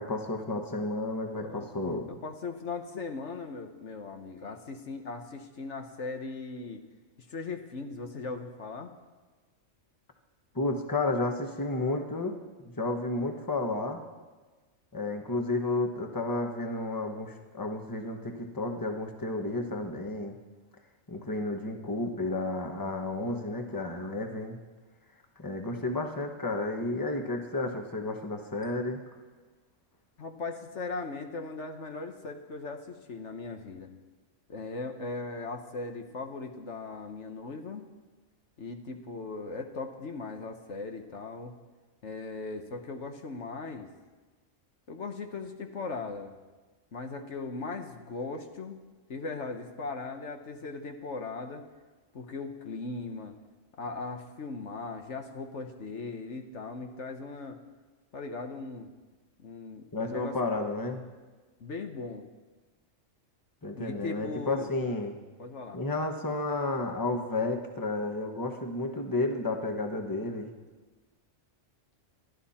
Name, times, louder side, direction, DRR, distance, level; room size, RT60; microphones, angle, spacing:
voice 1, 0.0-2.1 10.5-12.4 12.8-14.0 14.9-20.4 21.1-24.6 25.4-29.0 59.9-61.0 63.6-65.2 65.7-70.5, left 2 dB, 15° left, 4 dB, 1.3 m, -32 dB
voice 2, 1.3-6.8 7.2-8.9 30.2-33.9 34.5-37.8 38.6-41.6 42.0-43.9 44.9-46.3 46.9-48.8 49.1-51.6 52.1-53.3 53.7-57.6 58.1-58.9 59.4-60.4 61.6-62.2 63.7-64.7 65.4-65.8, left 3 dB, 65° left, 5 dB, 1.4 m, -38 dB
28.0 x 12.0 x 4.3 m, 1.3 s
omnidirectional pair, 1.3 m